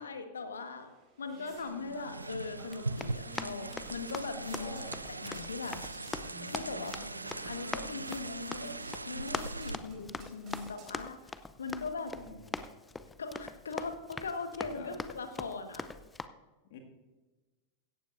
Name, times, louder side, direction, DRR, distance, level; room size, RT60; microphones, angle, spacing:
voice 1, 0.0-4.8 5.1-7.0 7.4-11.2 11.6-12.2 13.2-15.9, left 4 dB, 70° left, 7 dB, 1.5 m, -40 dB
sound 1, 0.8-11.3, right 2 dB, 35° right, 3.9 m, -53 dB
sound 2, 1.6-9.8, right 2 dB, 80° right, 0.4 m, -41 dB
Run, 2.6-16.3, left 3 dB, 10° left, 0.6 m, -43 dB
voice 2, 4.5-5.0 11.5-11.6 12.1-12.5 14.7-14.9 16.7-16.8, left 4 dB, 55° left, 2 dB, 2.2 m, -47 dB
17.0 x 14.5 x 2.6 m, 1.2 s
figure-of-eight pair, 90°, 0 cm